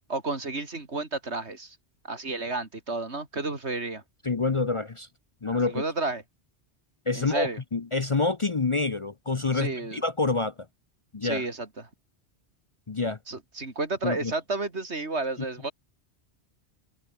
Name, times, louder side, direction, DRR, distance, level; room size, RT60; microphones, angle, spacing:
voice 1, 0.1-1.8 2.0-4.0 5.7-6.2 7.2-7.6 9.5-10.0 11.2-11.7 13.3-15.7, right 3 dB, 75° right, 3.6 m, -31 dB
voice 2, 4.2-5.1 5.4-5.8 7.1-10.5 11.1-11.4 12.9-13.2 14.0-14.3, left 3 dB, 30° left, 0.7 m, -27 dB
omnidirectional pair, 1.1 m